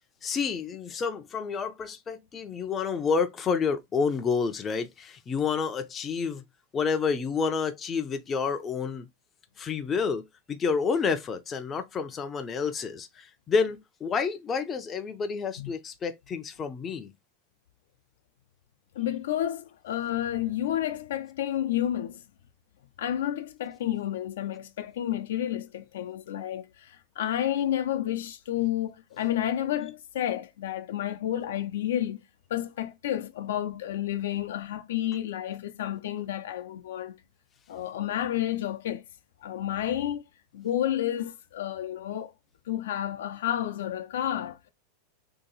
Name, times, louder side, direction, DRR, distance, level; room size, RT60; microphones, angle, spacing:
voice 1, 0.2-6.4 6.7-9.1 9.6-10.2 10.5-17.1, left 5 dB, 20° left, 0.4 m, -29 dB
voice 2, 18.9-22.2 23.0-32.2 32.5-37.2 37.7-39.0 39.4-40.2 40.5-42.3 42.7-44.7, left 12 dB, 85° left, 0.6 m, -30 dB
2.8 x 2.8 x 3.9 m
supercardioid pair, 160°, 0 cm